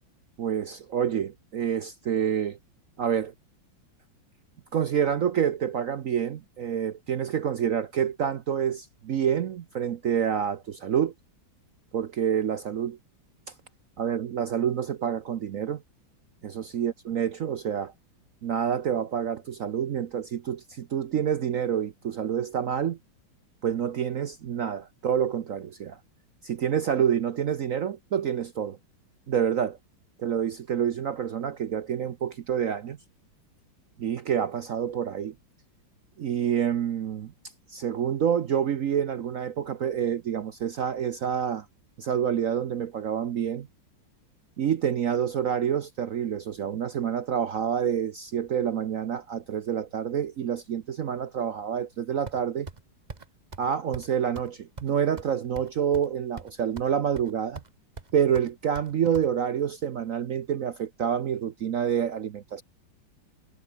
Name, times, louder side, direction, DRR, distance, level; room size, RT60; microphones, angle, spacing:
voice 1, 0.4-2.6 3.0-3.3 4.7-11.1 11.9-13.0 13.5-13.6 14.0-15.8 16.4-17.9 18.4-23.0 23.6-26.0 26.4-28.8 29.3-29.8 30.2-33.0 34.0-35.3 36.2-37.3 37.7-41.7 42.0-43.7 44.6-52.7 53.6-57.6 58.1-62.6, right 8 dB, 60° right, 0.9 m, -28 dB
sound 1, 52.3-52.8 53.1-53.3 53.5-53.7 53.9-54.1 54.4-54.5 54.8-56.1 56.4-56.9 57.2-57.7 58.0-59.3, right 3 dB, 25° right, 1.4 m, -42 dB
omnidirectional pair, 2.1 m